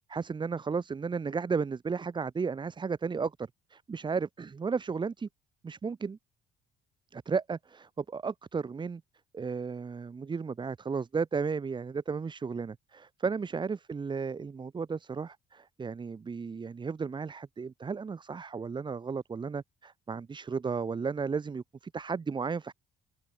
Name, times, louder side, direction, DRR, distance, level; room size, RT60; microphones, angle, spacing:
voice 1, 0.1-5.3 5.6-6.2 7.1-9.0 9.3-22.7, right 5 dB, 25° right, 1.9 m, -34 dB
open air
cardioid pair, 110°, 17 cm